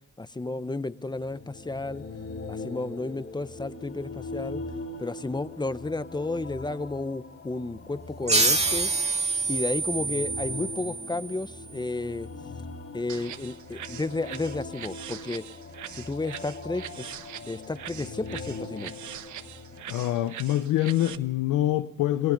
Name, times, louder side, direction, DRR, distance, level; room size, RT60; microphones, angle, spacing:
voice 1, 0.2-2.0 2.5-4.6 5.0-8.9 9.5-12.3 12.9-15.4 15.9-17.1 17.5-18.9, left 2 dB, 15° left, 1.0 m, -32 dB
sound 1, 1.1-19.8, left 3 dB, 50° left, 4.4 m, -41 dB
sound 2, 8.3-11.5, right 3 dB, 20° right, 2.1 m, -26 dB
sound 3, 13.1-21.2, right 10 dB, 70° right, 1.4 m, -42 dB
voice 2, 19.9-22.3, left 14 dB, 85° left, 1.0 m, -25 dB
29.0 x 19.5 x 5.4 m
cardioid pair, 90°, 30 cm